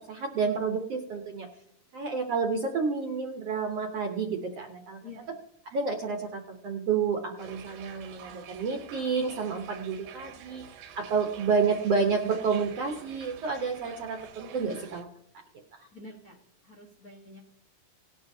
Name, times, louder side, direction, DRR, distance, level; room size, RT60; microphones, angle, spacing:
voice 1, 0.1-1.5 1.9-5.0 5.7-10.6 10.9-15.1 15.7-15.9, right 5 dB, 70° right, 3 dB, 1.5 m, -30 dB
sound 1, 7.4-15.0, right 8 dB, 85° right, 2.9 m, -48 dB
voice 2, 15.9-16.4 16.6-17.4, left 3 dB, 85° left, -1 dB, 0.7 m, -47 dB
18.5 x 11.5 x 2.8 m, 0.78 s
omnidirectional pair, 4.0 m